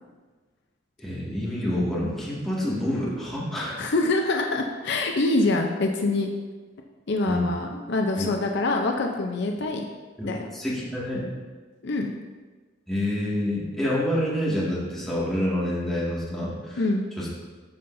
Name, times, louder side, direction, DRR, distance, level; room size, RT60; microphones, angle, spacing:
voice 1, 1.0-3.8 7.3-7.5 8.2-8.3 10.2-11.2 12.9-16.8 17.2-17.3, left 1 dB, ahead, -8 dB, 2.0 m, -27 dB
voice 2, 3.8-6.3 7.1-9.9 10.2-10.4 11.8-12.1 16.8-17.0, left 2 dB, 60° left, 2 dB, 0.6 m, -25 dB
13.0 x 5.5 x 2.6 m, 1.4 s
head